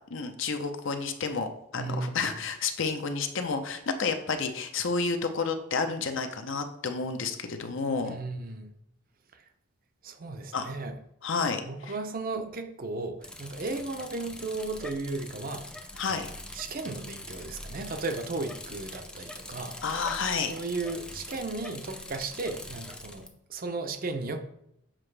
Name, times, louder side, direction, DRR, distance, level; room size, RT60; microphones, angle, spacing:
voice 1, 0.1-8.2 10.5-10.7 11.2-11.9 15.9-16.3 19.8-20.5, left 4 dB, 60° left, 7 dB, 0.6 m, -30 dB
voice 2, 1.8-2.4 8.0-8.7 10.0-10.9 11.7-19.8 20.4-24.4, right 3 dB, 40° right, 7 dB, 0.6 m, -35 dB
Bicycle, 13.2-23.3, left 1 dB, 5° left, 0.4 m, -43 dB
7.5 x 4.9 x 3.3 m, 0.77 s
head